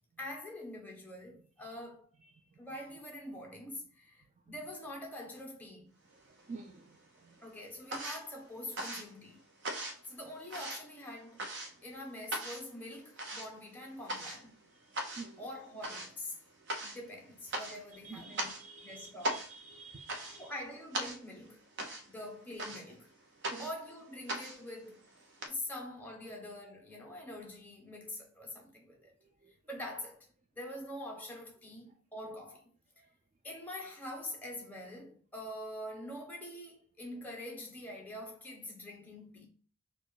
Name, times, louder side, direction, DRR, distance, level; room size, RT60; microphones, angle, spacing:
voice 1, 0.2-2.1 2.6-5.9 7.4-9.4 10.1-11.4 11.8-14.6 15.4-16.3 16.8-18.5 18.8-19.5 20.4-21.6 22.1-23.1 23.6-25.1 25.5-29.1 29.7-30.3 30.5-33.0 33.4-39.5, left 1 dB, 10° left, 1.0 m, -45 dB
sound 1, 6.1-6.9 7.2-25.5, right 1 dB, 55° right, 0.9 m, -41 dB
voice 2, 6.5-7.0 7.2-7.4 15.2-15.4 18.0-20.5 23.4-23.7 29.4-29.5, right 4 dB, 30° right, 0.4 m, -49 dB
4.3 x 2.6 x 4.8 m
head